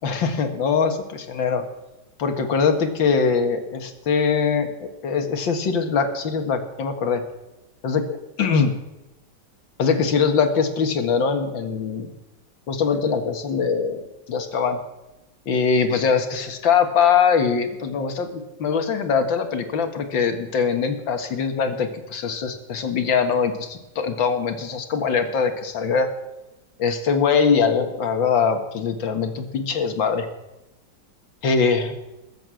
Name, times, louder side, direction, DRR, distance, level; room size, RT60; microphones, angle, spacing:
voice 1, 0.0-1.6 2.2-7.2 7.8-8.0 8.4-8.7 9.8-12.1 12.7-14.0 14.3-14.8 15.5-26.1 26.8-30.3 31.4-31.9, left 5 dB, 85° left, 7 dB, 2.3 m, -22 dB
20.5 x 7.8 x 7.7 m, 0.99 s
omnidirectional pair, 2.0 m